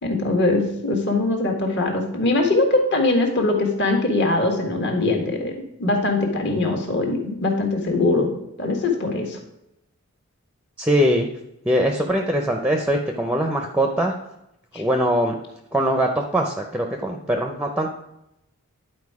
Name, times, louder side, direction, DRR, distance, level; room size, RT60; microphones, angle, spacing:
voice 1, 0.0-5.5 5.8-8.3 8.6-9.4 14.7-14.8, left 2 dB, 50° left, 3 dB, 1.6 m, -21 dB
voice 2, 10.8-11.3 11.6-14.1 14.7-15.4 15.7-17.9, equal, 5° right, 4 dB, 0.5 m, -22 dB
10.5 x 4.5 x 4.8 m, 0.84 s
head